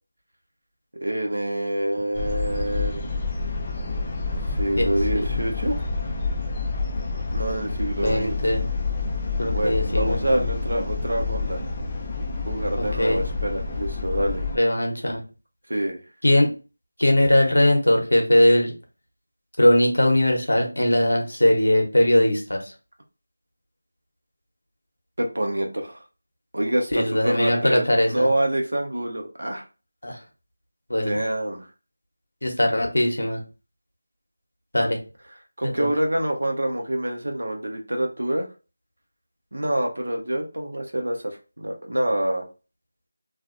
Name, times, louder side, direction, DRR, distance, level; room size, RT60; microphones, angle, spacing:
voice 1, 1.0-3.1 4.5-5.8 7.3-8.4 9.5-11.6 12.5-14.4 15.7-16.0 25.2-26.0 26.5-29.6 31.0-31.6 35.6-38.5 39.5-42.5, right 1 dB, 85° right, 2 dB, 0.6 m, -26 dB
sound 1, 2.1-14.6, left 3 dB, 20° left, 0.3 m, -28 dB
voice 2, 8.0-8.7 9.4-10.2 12.8-13.2 14.5-15.2 16.2-16.5 17.0-18.7 19.6-22.6 26.9-28.3 30.0-30.2 30.9-31.2 32.4-33.4 34.7-35.0 35.8-35.9, left 1 dB, 90° left, 2 dB, 0.9 m, -20 dB
2.4 x 2.1 x 2.5 m, 0.32 s
figure-of-eight pair, 175°, 0 cm